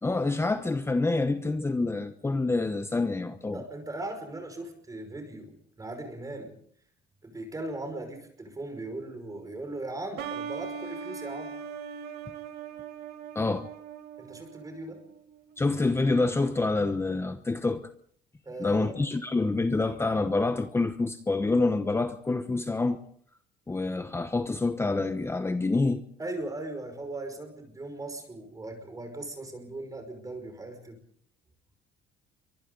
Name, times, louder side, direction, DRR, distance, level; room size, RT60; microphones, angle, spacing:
voice 1, 0.0-3.6 13.3-13.7 15.6-17.9 18.6-23.0 23.7-26.0, left 3 dB, 15° left, 1.0 m, -27 dB
voice 2, 3.5-6.5 7.2-11.5 14.2-15.0 18.4-19.0 26.2-31.0, right 2 dB, 20° right, 5.6 m, -38 dB
sound 1, 10.2-15.6, right 7 dB, 75° right, 2.4 m, -40 dB
28.5 x 24.0 x 3.9 m
cardioid pair, 110°, 17 cm